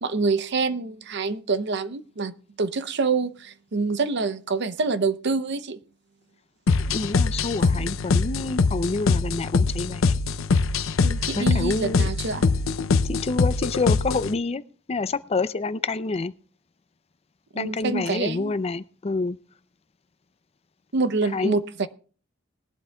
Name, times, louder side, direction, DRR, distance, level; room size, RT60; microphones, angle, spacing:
voice 1, 0.0-5.8 7.7-7.9 11.0-12.4 17.5-18.5 20.9-21.9, right 4 dB, 60° right, 13 dB, 0.7 m, -26 dB
sound 1, 6.7-14.3, left 4 dB, 90° left, 0.5 m, -23 dB
voice 2, 6.9-10.2 11.4-12.1 13.0-14.6 14.9-16.3 17.5-19.4 21.3-21.6, left 3 dB, 30° left, 15 dB, 0.4 m, -27 dB
20.0 x 11.5 x 2.3 m, 0.42 s
head